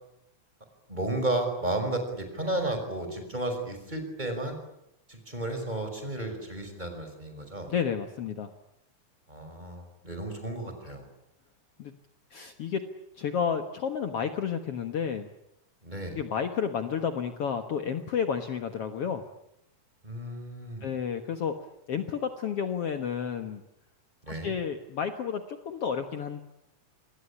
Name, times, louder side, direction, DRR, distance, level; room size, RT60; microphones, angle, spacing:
voice 1, 0.9-4.6 5.1-7.7 9.3-11.1 15.8-16.2 20.0-20.9 24.2-24.5, right 1 dB, 15° right, 6 dB, 5.8 m, -33 dB
voice 2, 7.7-8.5 11.8-11.9 12.3-12.8 13.2-15.3 16.1-19.3 20.8-21.5 21.9-23.6 24.3-26.4, left 7 dB, 55° left, 7 dB, 2.2 m, -31 dB
27.5 x 21.5 x 10.0 m, 0.82 s
omnidirectional pair, 3.4 m